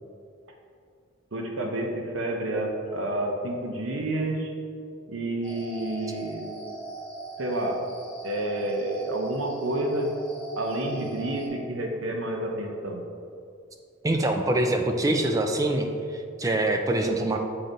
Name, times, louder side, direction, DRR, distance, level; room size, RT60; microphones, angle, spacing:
voice 1, 1.3-4.5 5.1-6.5 7.4-7.8 8.2-10.1 10.6-13.0 15.0-15.2, right 1 dB, 75° right, 1 dB, 0.8 m, -29 dB
sound 1, 5.4-11.5, right 2 dB, 5° left, 1.4 m, -40 dB
voice 2, 14.0-15.9 16.1-17.4, right 1 dB, 15° right, 4 dB, 0.4 m, -24 dB
8.0 x 3.9 x 3.9 m, 2.4 s
head